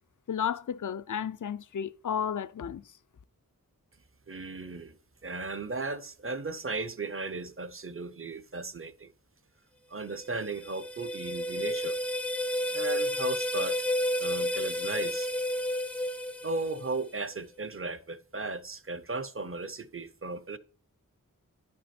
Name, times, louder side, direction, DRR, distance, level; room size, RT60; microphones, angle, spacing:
voice 1, 0.3-2.8, left 8 dB, 60° left, 0.5 m, -32 dB
voice 2, 4.3-5.0 5.2-9.1 9.9-12.0 12.7-13.8 14.2-15.3 16.4-20.6, right 3 dB, 40° right, 0.7 m, -36 dB
sound 1, 10.1-17.2, left 1 dB, 5° left, 0.5 m, -31 dB
11.0 x 6.1 x 4.3 m
wide cardioid pair, 45°, 34 cm